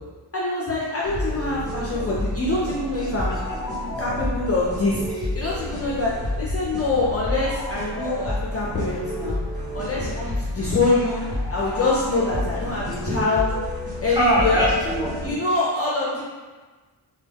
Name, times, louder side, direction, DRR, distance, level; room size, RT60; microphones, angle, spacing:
voice 1, 0.3-3.4 4.0-5.0 5.3-9.4 9.7-13.5 14.0-14.7 15.2-16.2, left 3 dB, 35° left, -5 dB, 0.4 m, -24 dB
sound 1, 1.0-15.3, left 1 dB, 55° right, 1.1 m, -30 dB
voice 2, 3.0-3.9 9.9-10.2 12.3-13.2 14.1-15.4, right 1 dB, 10° right, -7 dB, 0.6 m, -26 dB
3.2 x 2.2 x 3.4 m, 1.3 s
wide cardioid pair, 155°, 45 cm